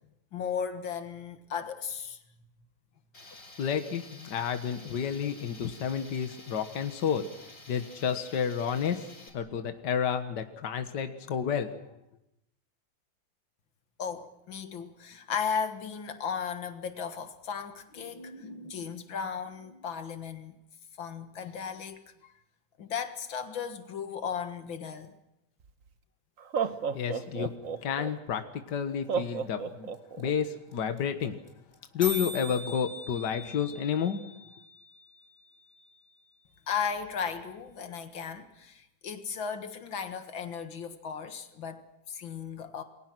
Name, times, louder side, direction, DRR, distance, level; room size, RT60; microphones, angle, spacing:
voice 1, 0.3-2.2 14.0-20.6 21.0-22.3 22.8-25.1 36.7-42.8, left 6 dB, 85° left, 2.4 m, -36 dB
Tools, 3.1-9.3, left 2 dB, 40° left, 3.9 m, -51 dB
voice 2, 3.6-7.3 7.7-9.0 9.3-11.7 26.9-27.5 27.8-29.9 30.2-31.3 31.9-34.2, left 7 dB, 65° left, 2.0 m, -30 dB
Laughter, 25.6-25.7 26.4-28.1 29.1-30.3, right 6 dB, 50° right, 1.5 m, -32 dB
sound 1, 29.9-30.0 30.2-30.3 30.5-30.7 31.0-31.1 31.2-31.5 31.7-31.8 32.0-36.0, left 2 dB, 20° left, 5.3 m, -41 dB
29.0 x 22.0 x 6.2 m
omnidirectional pair, 2.1 m